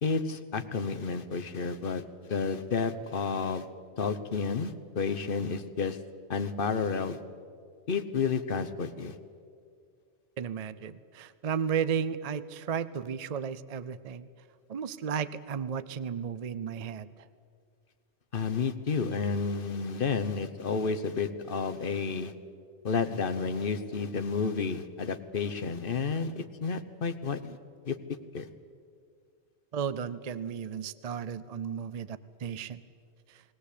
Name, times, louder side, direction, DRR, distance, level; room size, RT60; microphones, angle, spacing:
voice 1, 0.0-3.7 4.0-6.0 6.3-7.2 7.9-9.2 18.3-22.3 22.8-27.6 27.8-28.0 28.3-28.5, left 5 dB, 50° left, 9 dB, 1.1 m, -31 dB
voice 2, 10.4-14.3 14.7-17.3 29.7-32.8 33.3-33.4, right 7 dB, 45° right, 15 dB, 0.6 m, -34 dB
20.5 x 18.0 x 8.4 m, 2.2 s
omnidirectional pair, 1.2 m